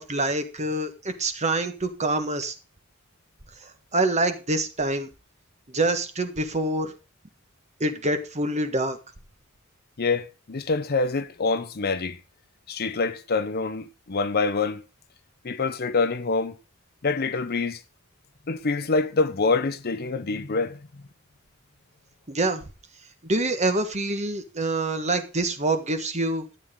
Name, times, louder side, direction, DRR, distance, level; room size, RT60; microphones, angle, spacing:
voice 1, 0.0-2.5 3.9-5.1 5.7-6.9 7.8-9.0 22.3-22.6 23.2-26.4, right 2 dB, 35° right, 1.5 m, -26 dB
voice 2, 10.0-12.2 12.7-14.8 15.4-16.6 17.0-17.8 18.5-20.8, left 4 dB, 50° left, 0.7 m, -26 dB
12.5 x 8.9 x 3.7 m
head